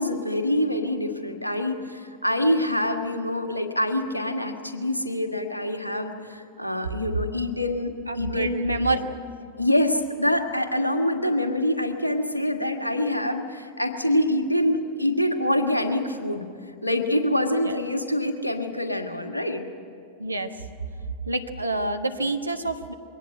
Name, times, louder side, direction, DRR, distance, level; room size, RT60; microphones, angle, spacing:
voice 1, 0.0-9.0 9.6-16.4 16.8-19.6, left 1 dB, 85° left, 5 dB, 1.6 m, -25 dB
voice 2, 8.1-9.0 17.6-17.8 20.2-20.5 21.3-22.9, right 2 dB, 85° right, 6 dB, 1.3 m, -27 dB
22.5 x 18.0 x 9.2 m, 2.3 s
figure-of-eight pair, 90°, 0 cm